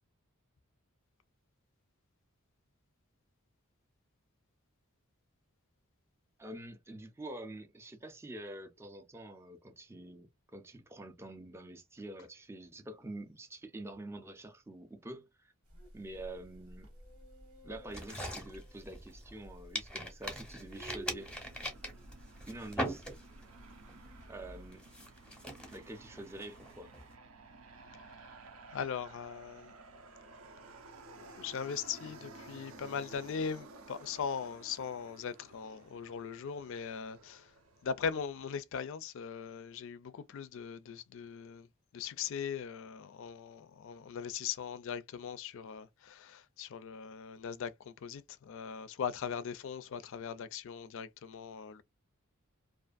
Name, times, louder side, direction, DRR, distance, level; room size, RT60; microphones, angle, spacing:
voice 1, 6.4-15.5 15.9-16.9 17.6-21.3 22.5-23.0 24.3-24.8 25.7-26.9, right 1 dB, 10° right, 0.4 m, -47 dB
sound 1, 15.6-24.7, right 1 dB, 90° right, 1.3 m, -53 dB
sound 2, 17.9-19.4 19.8-23.5 23.9-24.2 24.7-27.1, equal, 5° left, 0.8 m, -41 dB
Aircraft, 21.1-38.6, right 3 dB, 70° right, 0.6 m, -54 dB
voice 2, 28.7-29.7 31.1-37.5 37.8-41.7 41.9-51.8, left 7 dB, 60° left, 0.4 m, -40 dB
2.5 x 2.4 x 2.3 m
head